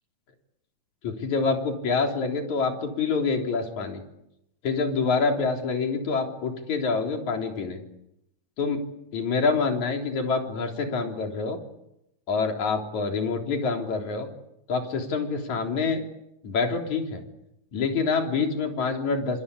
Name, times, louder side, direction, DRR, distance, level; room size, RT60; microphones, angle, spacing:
voice 1, 1.0-4.0 4.6-7.8 8.6-8.8 9.1-11.6 12.3-14.3 14.7-16.0 16.4-17.2 17.7-19.4, left 4 dB, 60° left, 3 dB, 5.0 m, -26 dB
26.0 x 26.0 x 8.6 m, 0.83 s
omnidirectional pair, 3.7 m